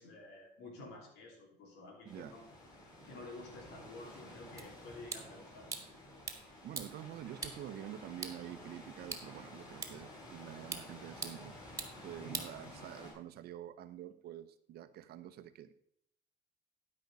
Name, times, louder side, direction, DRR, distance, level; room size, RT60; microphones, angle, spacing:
voice 1, 0.0-2.4 3.1-6.0 12.2-12.4, left 2 dB, 90° left, -1 dB, 2.9 m, -51 dB
voice 2, 2.0-2.3 6.3-11.5 12.0-15.7, right 11 dB, 70° right, 11 dB, 0.8 m, -47 dB
sound 1, 2.1-13.1, left 1 dB, 25° left, 4.7 m, -52 dB
sound 2, 4.6-13.2, right 4 dB, 20° right, 1.7 m, -47 dB
12.0 x 5.3 x 5.3 m, 0.72 s
cardioid pair, 110°, 17 cm